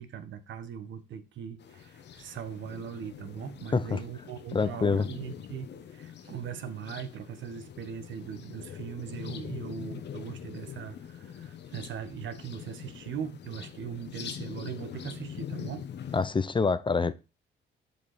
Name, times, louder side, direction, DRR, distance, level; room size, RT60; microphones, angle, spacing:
voice 1, 0.0-15.9, right 8 dB, 70° right, 1.2 m, -40 dB
sound 1, 1.6-16.3, left 9 dB, 60° left, 1.0 m, -43 dB
voice 2, 4.5-5.1 16.1-17.1, left 4 dB, 25° left, 0.6 m, -26 dB
7.3 x 5.1 x 4.1 m
cardioid pair, 90°, 20 cm